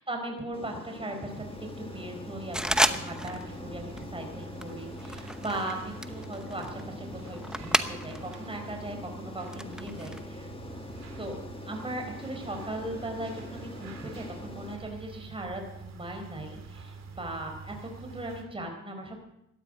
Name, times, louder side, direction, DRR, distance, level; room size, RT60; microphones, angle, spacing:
voice 1, 0.0-1.5 1.8-10.5 11.2-19.2, right 1 dB, 20° right, 3 dB, 4.3 m, -38 dB
Aircraft, 0.5-14.8, left 3 dB, 20° left, 1.5 m, -44 dB
sound 1, 1.3-18.4, right 4 dB, 60° right, 2.9 m, -46 dB
sound 2, 2.5-3.5 3.7-4.1 4.6-8.4 8.7-10.2, equal, ahead, 0.8 m, -31 dB
17.5 x 12.5 x 5.0 m, 0.80 s
cardioid pair, 90°, 30 cm